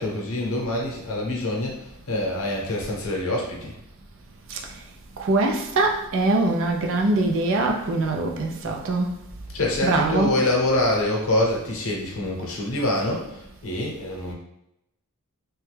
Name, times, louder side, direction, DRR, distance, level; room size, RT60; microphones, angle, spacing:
voice 1, 0.0-3.7 9.5-14.3, left 1 dB, 65° left, -1 dB, 0.8 m, -25 dB
voice 2, 5.2-9.1 9.8-10.4, right 2 dB, 60° right, 2 dB, 0.5 m, -22 dB
3.0 x 2.2 x 3.2 m, 0.81 s
head